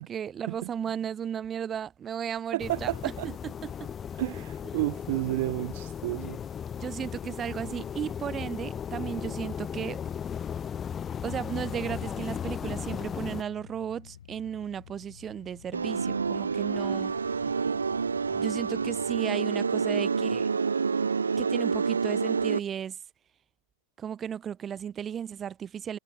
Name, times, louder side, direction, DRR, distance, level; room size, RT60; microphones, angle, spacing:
voice 1, 0.0-2.9 3.2-3.9 6.7-10.0 11.2-17.1 18.3-20.5 21.4-23.0 24.0-26.0, right 8 dB, 25° right, 3.1 m, -35 dB
voice 2, 2.5-3.3 4.2-6.4, right 19 dB, 50° right, 1.7 m, -31 dB
sound 1, 2.6-13.4, left 8 dB, 25° left, 0.7 m, -36 dB
sound 2, 11.3-19.2, left 9 dB, 65° left, 6.5 m, -51 dB
sound 3, 15.7-22.6, right 5 dB, 75° right, 0.7 m, -28 dB
figure-of-eight pair, 90°, 0 cm